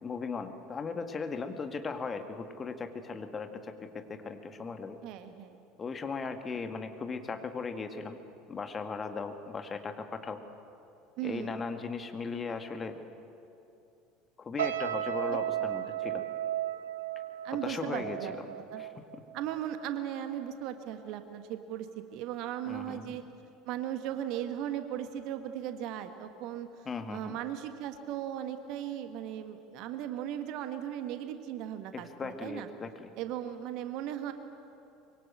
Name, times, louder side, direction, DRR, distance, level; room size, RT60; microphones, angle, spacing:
voice 1, 0.0-5.0 5.8-8.2 8.5-10.4 11.2-12.9 14.4-16.3 17.5-18.3 18.8-19.2 22.7-23.2 26.9-27.4 31.9-33.1, left 4 dB, 25° left, 7 dB, 2.0 m, -38 dB
voice 2, 5.0-5.6 11.2-11.6 15.3-15.4 17.4-18.3 18.7-18.8 19.3-23.2 23.7-32.7 33.2-34.3, right 11 dB, 50° right, 8 dB, 1.6 m, -37 dB
sound 1, 14.6-19.9 20.2-20.5, right 12 dB, 70° right, 1.0 m, -35 dB
24.5 x 23.5 x 7.8 m, 2.7 s
figure-of-eight pair, 70°, 0 cm